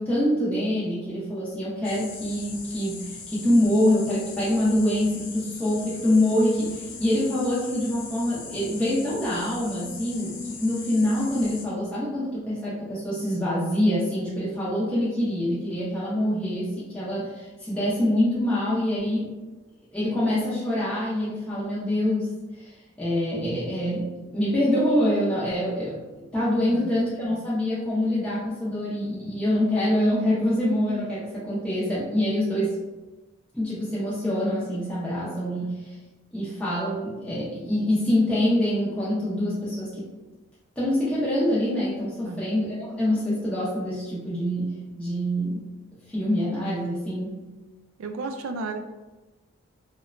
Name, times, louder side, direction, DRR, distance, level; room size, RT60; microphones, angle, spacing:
voice 1, 0.0-19.3 19.9-22.3 22.6-22.7 23.0-26.0 26.3-32.8 33.5-36.0 36.3-40.1 40.8-45.7 46.1-47.4, left 1 dB, 5° left, -9 dB, 0.5 m, -25 dB
sound 1, 1.8-11.7, left 4 dB, 60° left, 0.4 m, -40 dB
voice 2, 48.0-48.8, right 3 dB, 75° right, 6 dB, 0.3 m, -33 dB
2.9 x 2.1 x 2.4 m, 1.1 s
head